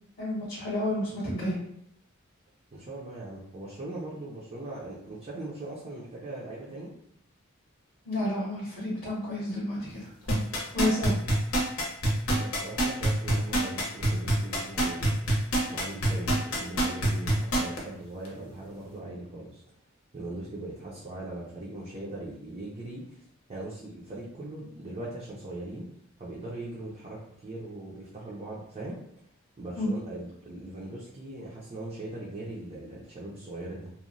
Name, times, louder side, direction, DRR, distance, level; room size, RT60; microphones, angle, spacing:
voice 1, 0.2-1.6 8.0-10.1 10.7-11.1 29.7-29.9, left 1 dB, 35° left, -6 dB, 0.8 m, -30 dB
voice 2, 2.7-6.9 12.3-15.1 15.7-19.6 20.1-23.2 23.5-25.9 26.2-29.0 29.6-33.9, right 2 dB, 30° right, -6 dB, 0.5 m, -40 dB
sound 1, 10.3-17.8 18.2-18.3, right 1 dB, 85° left, 0.8 m, -25 dB
2.9 x 2.1 x 2.5 m, 0.71 s
head